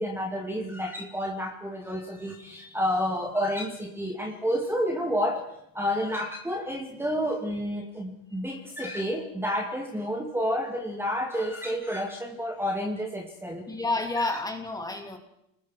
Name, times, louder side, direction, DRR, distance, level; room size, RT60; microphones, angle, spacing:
voice 1, 0.0-5.4 5.7-13.7 14.2-14.3, equal, 5° right, 2 dB, 2.4 m, -30 dB
voice 2, 2.4-2.8 13.7-15.2, left 2 dB, 10° left, 4 dB, 2.9 m, -30 dB
29.0 x 20.5 x 4.6 m, 0.79 s
supercardioid pair, 120°, 39 cm